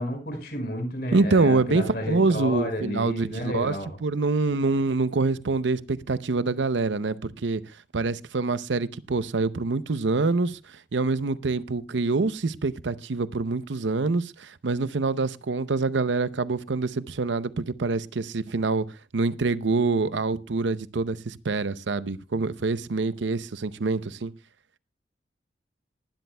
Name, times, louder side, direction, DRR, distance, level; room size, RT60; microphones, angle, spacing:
voice 1, 0.0-3.9, left 1 dB, 55° left, 4.9 m, -31 dB
voice 2, 1.1-3.8 4.0-18.9 19.1-24.3, right 3 dB, 85° right, 0.7 m, -26 dB
19.5 x 12.0 x 2.2 m
head